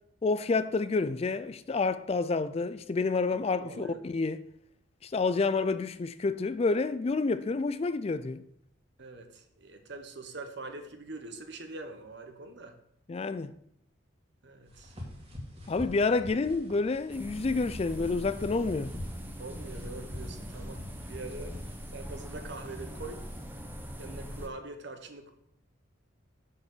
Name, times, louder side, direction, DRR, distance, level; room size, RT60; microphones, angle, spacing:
voice 1, 0.2-4.4 5.0-8.4 13.1-13.5 15.7-18.9, left 3 dB, 30° left, 0.3 m, -29 dB
voice 2, 3.5-4.0 9.0-12.7 14.4-14.9 19.4-21.5 21.9-23.2 24.0-25.3, right 2 dB, 60° right, 1.3 m, -43 dB
sound 1, 14.7-23.4, left 1 dB, 30° right, 2.2 m, -47 dB
sound 2, 17.1-24.5, equal, 10° right, 1.0 m, -41 dB
7.0 x 6.7 x 6.7 m
head